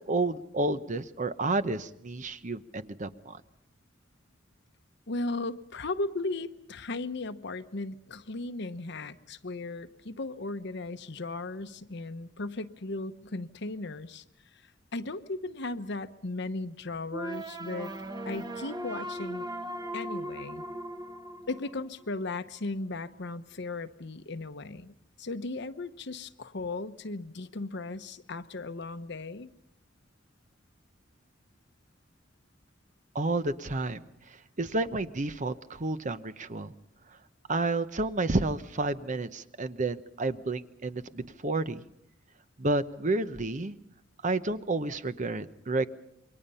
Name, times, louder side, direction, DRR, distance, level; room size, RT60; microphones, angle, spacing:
voice 1, 0.0-3.4 33.1-36.7 37.5-41.8 42.6-43.8 44.2-45.9, right 2 dB, 40° right, 12 dB, 0.9 m, -30 dB
voice 2, 5.1-14.2 14.9-17.9 18.2-19.5 19.9-20.6 21.5-29.5, left 2 dB, 65° left, 11 dB, 1.0 m, -36 dB
sound 1, 17.1-22.1, right 1 dB, 20° right, 1.1 m, -38 dB
28.0 x 23.5 x 5.6 m, 0.79 s
head